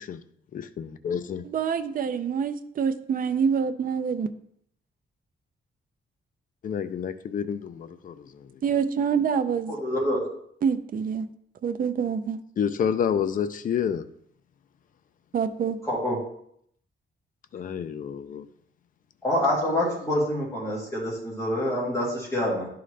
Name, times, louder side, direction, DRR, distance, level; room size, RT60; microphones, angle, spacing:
voice 1, 0.5-1.4 6.6-8.2 12.6-14.0 17.5-18.4, left 8 dB, 40° left, 0.4 m, -29 dB
voice 2, 1.4-4.3 8.6-9.7 10.6-11.3 11.6-12.4 15.3-15.8, right 6 dB, 45° right, 0.4 m, -26 dB
voice 3, 9.7-10.2 15.8-16.2 19.2-22.7, left 1 dB, 15° left, 2.3 m, -26 dB
11.0 x 3.9 x 3.3 m
wide cardioid pair, 165°, 20 cm